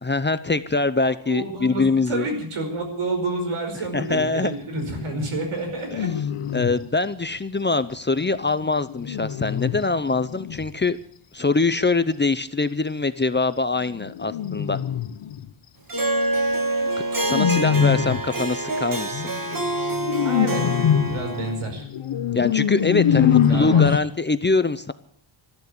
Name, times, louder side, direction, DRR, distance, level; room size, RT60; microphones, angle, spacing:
voice 1, 0.0-2.3 3.9-4.6 6.5-11.0 11.3-14.8 17.2-19.2 22.3-24.9, left 3 dB, 20° left, 13 dB, 0.7 m, -23 dB
voice 2, 1.3-6.1 17.7-17.9 20.2-20.7 21.1-21.9 23.0-24.0, right 2 dB, 85° right, 4 dB, 5.2 m, -29 dB
sound 1, 4.7-5.3 5.8-6.9 8.2-10.7 13.9-15.5 17.2-18.4 19.1-24.0, left 9 dB, 85° left, 1.0 m, -24 dB
Harp, 15.9-21.7, right 2 dB, 40° right, 2.1 m, -26 dB
14.0 x 12.0 x 8.6 m, 0.62 s
wide cardioid pair, 130°, 49 cm